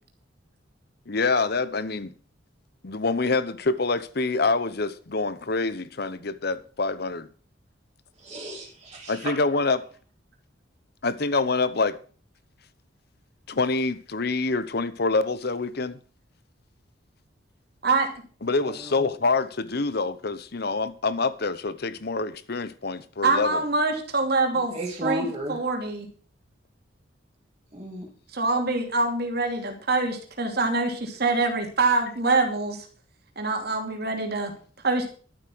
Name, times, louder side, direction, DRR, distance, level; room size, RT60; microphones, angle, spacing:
voice 1, 1.1-2.1 2.8-7.3 9.1-9.8 11.0-12.0 13.5-16.0 18.4-23.6, left 3 dB, 55° left, 0.9 m, -26 dB
voice 2, 8.2-9.3 18.6-18.9 24.7-25.6 27.7-28.1, right 2 dB, 25° right, 2.6 m, -33 dB
voice 3, 23.2-24.7 25.0-26.1 28.3-32.8 33.4-34.5 34.8-35.1, right 3 dB, 55° right, 2.7 m, -25 dB
12.5 x 8.1 x 6.1 m
head